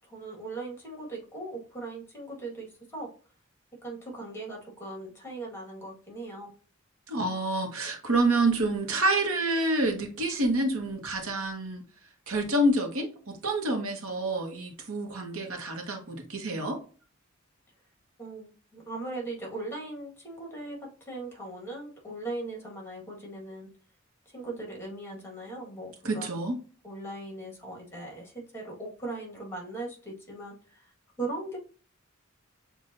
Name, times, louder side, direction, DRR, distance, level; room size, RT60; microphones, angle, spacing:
voice 1, 0.1-2.7 2.9-3.1 3.8-6.5 18.2-20.8 21.1-23.7 24.3-26.4 26.8-30.8 31.2-31.6, right 2 dB, 10° left, 1.7 m, -39 dB
voice 2, 7.1-11.8 12.3-16.8 26.0-26.6, right 2 dB, 90° right, 1.2 m, -28 dB
6.9 x 2.6 x 2.6 m
head